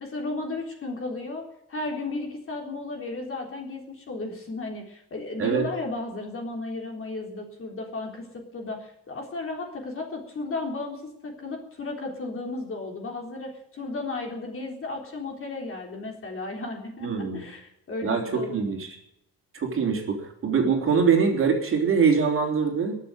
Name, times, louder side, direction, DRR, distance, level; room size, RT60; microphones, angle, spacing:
voice 1, 0.0-18.6, left 2 dB, 35° left, 2 dB, 3.7 m, -34 dB
voice 2, 17.0-17.4 18.0-19.0 19.5-23.0, right 5 dB, 30° right, 2 dB, 3.6 m, -23 dB
21.5 x 7.4 x 8.9 m, 0.80 s
cardioid pair, 170°, 40 cm